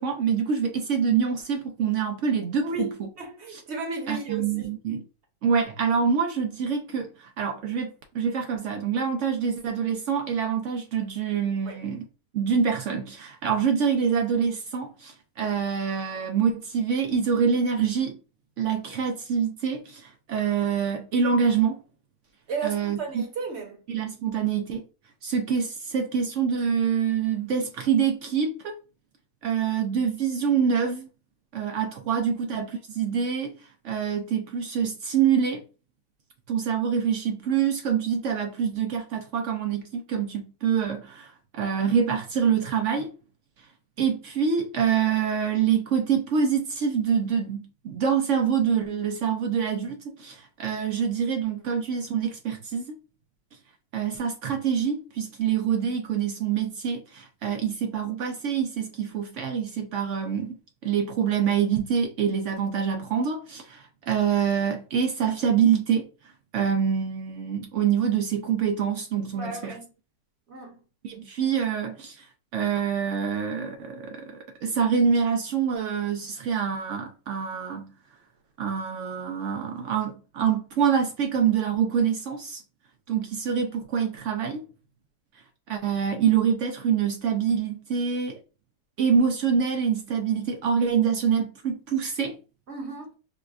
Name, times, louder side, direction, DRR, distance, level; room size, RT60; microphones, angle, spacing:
voice 1, 0.0-3.1 3.5-3.6 4.1-5.0 5.4-12.0 12.3-18.2 18.6-21.8 22.6-23.2 23.9-24.8 25.2-28.7 29.4-31.1 31.5-33.6 33.8-35.6 36.5-43.1 44.0-53.0 53.9-60.6 60.8-66.1 66.5-69.8 71.0-72.2 72.5-77.9 78.6-82.6 83.1-84.7 85.7-88.4 89.0-92.4, right 7 dB, 65° right, 0.7 m, -26 dB
voice 2, 2.6-4.7 11.7-11.8 22.5-23.8 69.3-69.9 70.5-70.8 92.7-93.1, right 3 dB, 50° right, 1.1 m, -34 dB
4.7 x 2.3 x 2.3 m
omnidirectional pair, 1.6 m